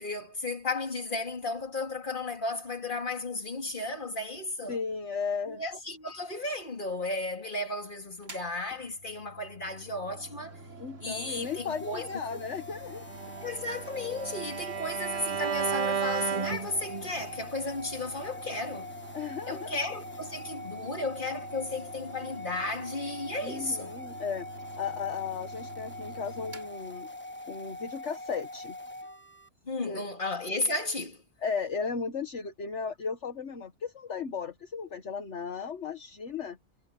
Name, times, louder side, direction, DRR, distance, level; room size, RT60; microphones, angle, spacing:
voice 1, 0.0-4.8 5.5-10.6 11.0-12.4 13.4-18.9 19.5-24.0 29.6-31.2, left 2 dB, 35° left, 3.0 m, -34 dB
voice 2, 4.7-5.6 10.8-13.1 19.1-19.8 23.4-24.5 24.8-27.1 27.5-28.8 29.9-30.0 31.4-36.6, left 5 dB, 60° left, 1.7 m, -35 dB
Mechanical fan, 8.2-27.6, right 2 dB, 65° right, 3.7 m, -48 dB
sound 1, 11.3-29.5, left 1 dB, 10° left, 1.1 m, -43 dB
Bowed string instrument, 13.1-17.3, right 7 dB, 45° right, 0.5 m, -33 dB
omnidirectional pair, 1.4 m